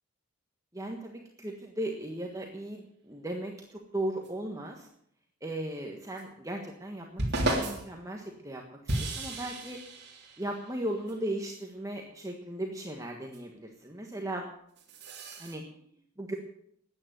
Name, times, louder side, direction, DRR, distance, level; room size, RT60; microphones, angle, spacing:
voice 1, 0.7-4.9 5.4-9.8 10.4-14.5 15.4-15.6 16.2-16.3, right 1 dB, 15° right, 1 dB, 1.4 m, -37 dB
sound 1, 4.2-4.3 6.2-6.3 7.2-8.0 8.9-11.1 13.3-13.4 14.8-15.5, right 1 dB, 50° right, 3.5 m, -33 dB
13.5 x 9.8 x 9.2 m, 0.69 s
head